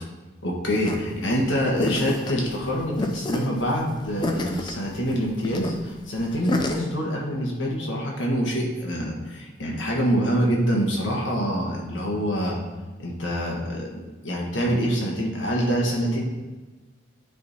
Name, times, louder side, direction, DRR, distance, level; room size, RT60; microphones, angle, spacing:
voice 1, 0.4-12.6 13.0-16.2, equal, 65° left, -1 dB, 1.5 m, -25 dB
sound 1, 0.8-6.8, left 1 dB, 20° left, 0.5 m, -30 dB
10.0 x 3.8 x 4.2 m, 1.3 s
head